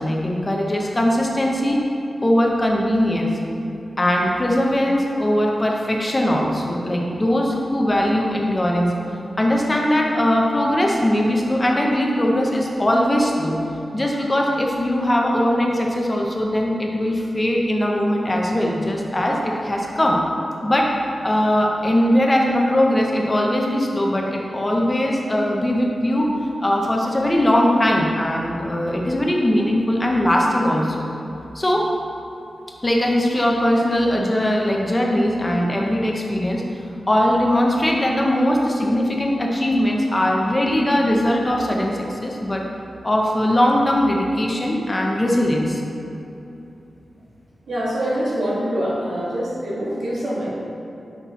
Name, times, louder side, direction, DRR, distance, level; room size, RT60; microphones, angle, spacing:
voice 1, 0.0-1.8 2.2-3.3 4.0-8.9 9.4-13.6 13.9-20.2 20.6-20.9 21.2-26.3 26.6-31.0 31.5-31.9 32.8-36.6 37.1-42.7 43.0-45.8, left 1 dB, 20° left, -1 dB, 0.5 m, -20 dB
voice 2, 47.7-50.5, equal, 70° right, -6 dB, 1.5 m, -24 dB
5.8 x 4.3 x 4.0 m, 2.9 s
wide cardioid pair, 170°, 0 cm